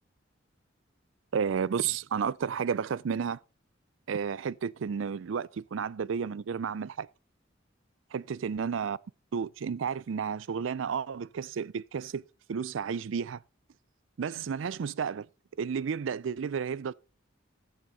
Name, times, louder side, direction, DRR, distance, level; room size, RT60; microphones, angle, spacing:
voice 1, 1.3-3.4 4.1-7.1 8.1-9.0 9.3-12.2 12.5-13.4 14.2-15.3 15.6-16.9, right 6 dB, 75° right, 0.4 m, -32 dB
11.5 x 8.9 x 3.8 m
head